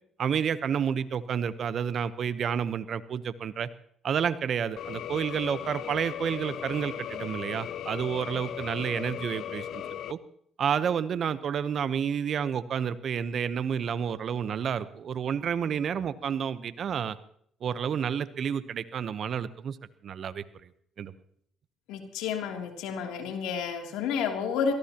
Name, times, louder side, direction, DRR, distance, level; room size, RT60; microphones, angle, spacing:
voice 1, 0.2-3.7 4.0-10.2 10.6-17.2 17.6-19.8 20.0-20.4 21.0-21.1, right 7 dB, 60° right, 14 dB, 0.9 m, -30 dB
sound 1, 4.8-10.1, left 10 dB, 65° left, 0.6 m, -37 dB
voice 2, 21.9-24.7, left 6 dB, 85° left, 3 dB, 2.9 m, -30 dB
24.0 x 18.0 x 3.0 m, 0.65 s
supercardioid pair, 65°, 0 cm